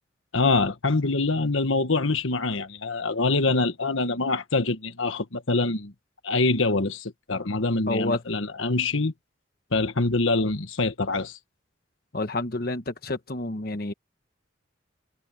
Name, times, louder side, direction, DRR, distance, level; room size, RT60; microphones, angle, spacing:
voice 1, 0.3-5.9 6.2-9.1 9.7-11.4, left 3 dB, 85° left, 1.5 m, -25 dB
voice 2, 7.9-8.2 12.1-13.9, left 2 dB, 50° left, 1.2 m, -29 dB
head